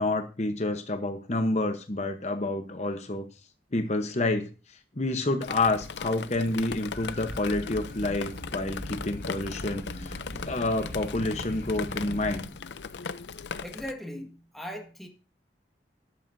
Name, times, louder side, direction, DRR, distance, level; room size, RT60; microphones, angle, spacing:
voice 1, 0.0-3.3 3.7-4.5 5.0-12.5, left 2 dB, 40° left, 1.0 m, -29 dB
Drip, 5.4-13.9, left 5 dB, 80° left, 0.6 m, -39 dB
sound 1, 6.9-12.4, equal, 65° left, 5.7 m, -40 dB
voice 2, 13.6-15.1, equal, ahead, 1.6 m, -39 dB
13.0 x 11.0 x 2.7 m
head